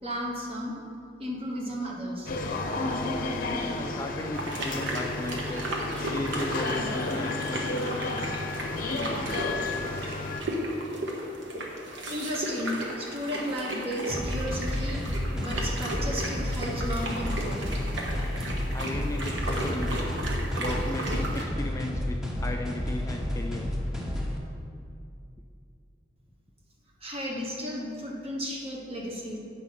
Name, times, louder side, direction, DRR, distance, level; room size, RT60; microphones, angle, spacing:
voice 1, 0.0-0.8 1.2-2.3 10.0-10.2 11.8-15.1 15.3-17.6 27.0-29.4, equal, 30° right, -2 dB, 1.3 m, -34 dB
sound 1, 2.3-10.4, left 2 dB, 50° left, 0.7 m, -32 dB
voice 2, 3.7-5.6 6.1-8.5 18.7-20.2 20.6-23.7, left 1 dB, 15° left, 2 dB, 0.4 m, -36 dB
sound 2, 4.3-21.4, right 1 dB, 75° right, 1.2 m, -35 dB
sound 3, 14.1-24.4, left 1 dB, 5° right, 0.9 m, -31 dB
8.1 x 4.8 x 5.8 m, 2.5 s
head